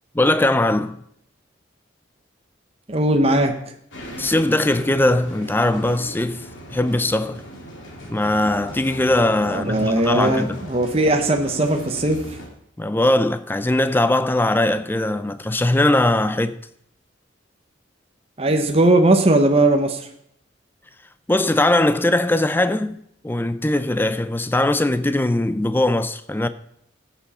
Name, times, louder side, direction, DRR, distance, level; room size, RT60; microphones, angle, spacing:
voice 1, 0.1-1.0 4.2-7.4 8.1-10.6 12.8-16.6 21.3-26.5, left 1 dB, 10° left, 0.4 m, -20 dB
voice 2, 2.9-3.5 9.5-12.2 18.4-20.1, right 1 dB, 30° right, 0.9 m, -18 dB
sound 1, 3.9-12.5, equal, 85° left, 2.7 m, -37 dB
16.0 x 7.2 x 4.2 m
head